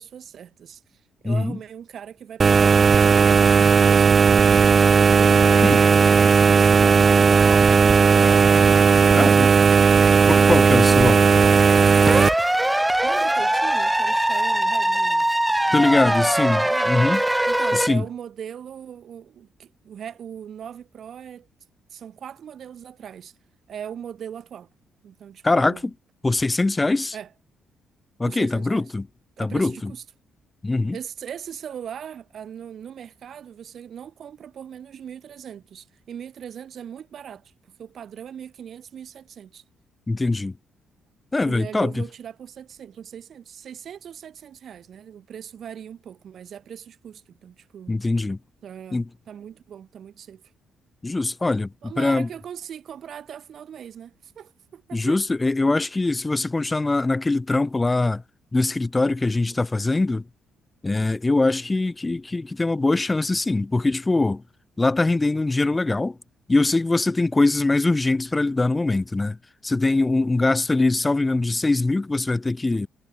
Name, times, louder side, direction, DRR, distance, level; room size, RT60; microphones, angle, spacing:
voice 1, 0.0-4.7 5.1-8.3 13.0-15.3 15.7-16.4 16.6-16.9 17.5-21.5 21.9-23.3 23.7-24.7 25.0-25.9 27.1-27.3 28.2-28.9 29.4-30.0 30.9-39.6 41.4-48.0 48.6-50.4 51.8-55.2 59.5-59.6, right 8 dB, 60° right, 6.6 m, -39 dB
voice 2, 1.2-1.6 5.6-5.8 9.1-9.5 10.3-11.2 15.7-17.2 17.7-18.0 25.4-25.8 26.2-27.1 28.2-29.1 29.4-29.9 30.6-31.0 40.1-40.5 41.3-42.0 47.9-48.4 48.9-49.0 51.0-51.7 52.0-52.3 54.9-58.2 58.5-60.2 60.8-64.4 64.8-66.2 66.5-69.4 69.6-72.9, left 2 dB, 20° left, 0.9 m, -22 dB
sound 1, 2.4-12.3, right 5 dB, 40° right, 1.4 m, -15 dB
sound 2, 12.0-17.9, right 1 dB, 10° right, 0.5 m, -21 dB
cardioid pair, 90°, 0 cm